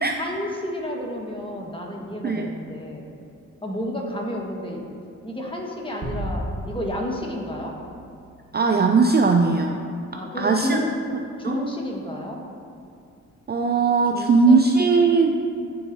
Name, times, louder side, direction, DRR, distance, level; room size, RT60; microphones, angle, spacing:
voice 1, 0.2-3.1 3.6-4.9 5.2-7.8 10.1-10.9 11.4-12.4 14.1-14.6, left 1 dB, 15° left, -1 dB, 1.3 m, -31 dB
sound 1, 6.0-8.6, right 1 dB, 55° right, 1.4 m, -34 dB
voice 2, 8.5-9.8 10.4-10.8 11.4-11.6 13.5-15.4, right 4 dB, 30° right, 3 dB, 0.4 m, -19 dB
12.0 x 4.0 x 2.6 m, 2.4 s
cardioid pair, 50°, 32 cm